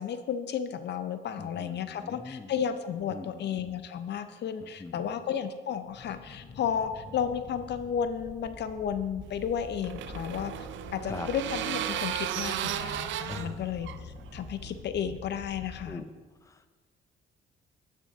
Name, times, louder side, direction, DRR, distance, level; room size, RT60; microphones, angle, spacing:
voice 1, 0.0-10.5 10.9-16.0, left 8 dB, 60° left, 10 dB, 0.5 m, -33 dB
voice 2, 1.4-2.5 3.1-3.5 4.6-5.2 11.0-11.3 13.3-13.8 15.7-16.1 16.4-16.7, left 3 dB, 15° left, 9 dB, 0.5 m, -42 dB
sound 1, 5.9-15.9, left 4 dB, 40° left, 0.9 m, -47 dB
sound 2, 9.3-14.8, right 11 dB, 70° right, 0.4 m, -35 dB
13.0 x 6.2 x 2.7 m, 1.3 s
cardioid pair, 90°, 20 cm